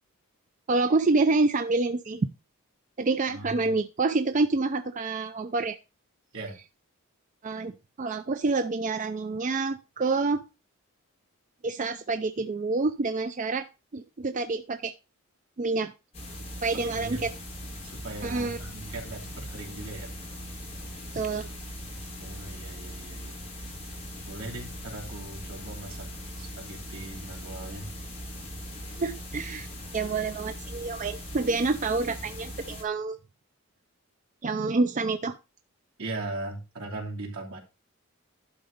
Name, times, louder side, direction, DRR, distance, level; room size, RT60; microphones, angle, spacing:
voice 1, 0.7-2.3 3.0-5.8 7.4-7.7 8.0-10.4 11.6-13.6 13.9-14.9 15.6-15.9 16.6-17.3 18.2-18.6 21.1-21.5 29.0-29.7 29.9-33.2 34.4-35.3, right 3 dB, 35° right, 9 dB, 0.4 m, -27 dB
voice 2, 3.3-3.7 6.3-6.6 16.7-17.2 17.9-20.1 22.2-23.4 24.3-26.1 26.4-27.9 36.0-37.6, right 2 dB, 75° right, -2 dB, 2.9 m, -39 dB
sound 1, 16.1-32.8, equal, 30° left, 2.6 m, -40 dB
11.5 x 4.1 x 5.1 m, 0.29 s
head